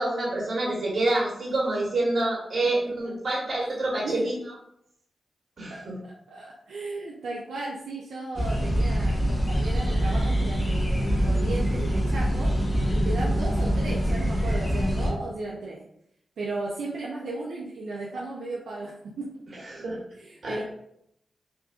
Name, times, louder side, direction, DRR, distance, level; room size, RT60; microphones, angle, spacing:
voice 1, 0.0-4.3 5.6-5.9 19.7-20.0 20.4-20.6, right 2 dB, 60° right, -4 dB, 1.2 m, -27 dB
voice 2, 3.9-4.2 5.7-15.8 16.4-19.3 19.6-20.6, right 2 dB, 90° right, -4 dB, 0.4 m, -35 dB
sound 1, 8.3-15.1, equal, 25° left, 1.3 m, -24 dB
3.4 x 2.5 x 2.3 m, 0.74 s
cardioid pair, 60°, 0 cm